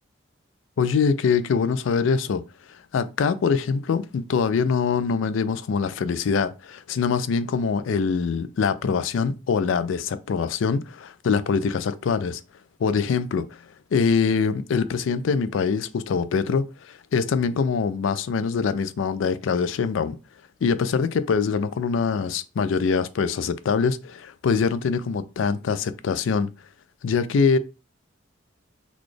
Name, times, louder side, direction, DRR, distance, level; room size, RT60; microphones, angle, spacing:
voice 1, 0.8-2.4 2.9-12.4 12.8-13.4 13.9-20.2 20.6-26.5 27.0-27.6, left 5 dB, 75° left, 0.4 m, -24 dB
4.0 x 2.3 x 3.2 m
head